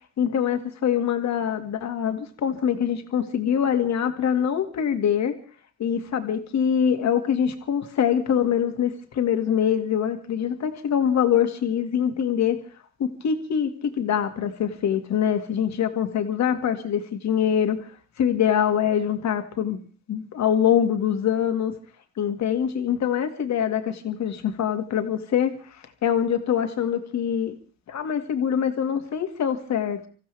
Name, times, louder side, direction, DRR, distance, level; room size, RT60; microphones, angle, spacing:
voice 1, 0.2-5.3 5.8-12.6 13.0-17.9 18.2-19.8 20.1-21.7 22.2-25.8 26.0-27.6 27.9-30.0, left 8 dB, 65° left, 7 dB, 2.1 m, -24 dB
26.0 x 15.0 x 3.5 m, 0.40 s
cardioid pair, 90°, 30 cm